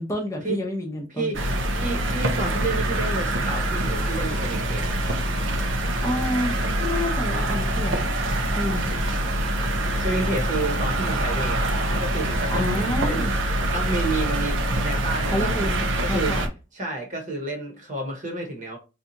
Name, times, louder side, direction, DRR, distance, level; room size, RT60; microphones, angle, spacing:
voice 1, 0.0-1.4 6.0-8.1 8.5-9.0 12.5-13.3 15.3-16.4, left 1 dB, 15° left, 0.7 m, -29 dB
sound 1, 1.3-16.5, right 1 dB, 70° right, 0.6 m, -25 dB
voice 2, 1.7-5.0 10.0-13.3 13.7-16.4 16.7-18.8, right 2 dB, 40° right, 1.0 m, -30 dB
2.7 x 2.4 x 3.9 m
head